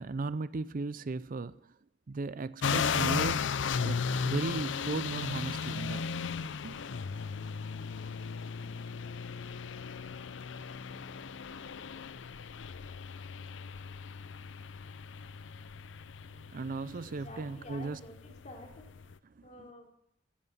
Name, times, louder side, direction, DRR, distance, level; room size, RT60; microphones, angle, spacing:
voice 1, 0.0-1.6 2.1-3.5 3.8-6.0 6.6-6.8 16.5-18.0 19.4-19.5, right 3 dB, 50° right, 0.5 m, -36 dB
sound 1, 2.6-19.1, left 6 dB, 75° left, 0.5 m, -36 dB
voice 2, 16.9-18.8 19.4-19.9, left 2 dB, 40° left, 3.3 m, -50 dB
14.0 x 11.0 x 7.1 m
head